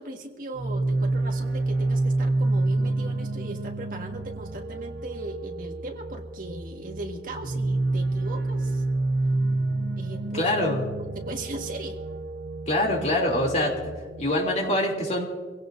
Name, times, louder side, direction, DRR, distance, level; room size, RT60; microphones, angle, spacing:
voice 1, 0.0-8.8 10.0-10.5 11.1-12.0, right 2 dB, 50° right, 2 dB, 1.7 m, -38 dB
sound 1, 0.5-14.2, right 2 dB, 85° right, 1.3 m, -28 dB
voice 2, 10.3-10.8 12.7-13.9 14.2-15.2, left 1 dB, 40° left, 0 dB, 2.9 m, -24 dB
25.5 x 17.0 x 2.6 m, 1.5 s
head